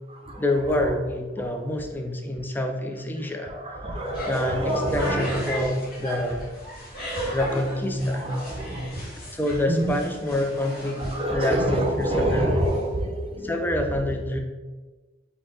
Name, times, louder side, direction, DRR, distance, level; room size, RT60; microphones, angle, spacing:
voice 1, 0.4-3.5 4.3-6.4 7.3-8.3 9.3-12.7 13.4-14.4, left 1 dB, 10° left, 4 dB, 0.4 m, -27 dB
voice 2, 3.8-5.4 7.3-7.4 8.0-9.0 9.7-9.9 11.1-13.6, right 1 dB, 30° right, 2 dB, 0.7 m, -26 dB
sound 1, 4.0-13.0, equal, 55° left, 1.5 m, -35 dB
4.4 x 2.8 x 3.7 m, 1.3 s
head